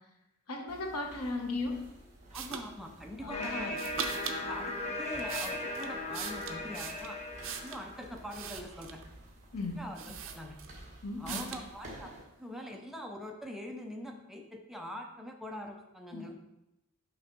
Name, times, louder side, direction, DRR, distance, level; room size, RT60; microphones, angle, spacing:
voice 1, 0.5-1.8 3.2-3.7 4.4-4.5 9.5-9.8 11.0-11.5 16.1-16.3, left 3 dB, 85° left, 2 dB, 1.0 m, -36 dB
sound 1, 0.7-12.2, right 1 dB, 30° right, 1.4 m, -52 dB
voice 2, 2.3-3.8 4.4-7.2 7.5-9.0 9.8-10.6 11.2-16.3, equal, ahead, 2 dB, 0.5 m, -44 dB
sound 2, 2.3-2.7 3.7-4.4 5.0-7.9 8.3-9.1 9.6-9.7 9.9-10.8 11.2-11.7, right 7 dB, 60° right, 0.6 m, -40 dB
sound 3, 3.3-8.1, left 2 dB, 30° left, 0.8 m, -38 dB
6.0 x 3.4 x 6.0 m, 0.91 s
head